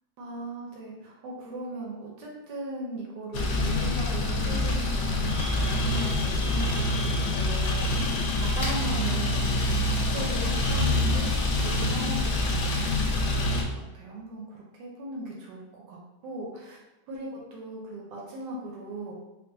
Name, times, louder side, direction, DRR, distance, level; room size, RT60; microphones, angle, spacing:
voice 1, 0.2-8.1 8.4-9.8 10.1-16.8 17.1-19.1, right 2 dB, 90° right, -3 dB, 1.3 m, -38 dB
sound 1, 3.3-13.6, left 2 dB, 80° left, 1.1 m, -26 dB
Domestic sounds home sounds, 5.2-13.1, left 2 dB, 45° left, 0.8 m, -40 dB
3.7 x 2.4 x 2.6 m, 0.98 s
omnidirectional pair, 1.8 m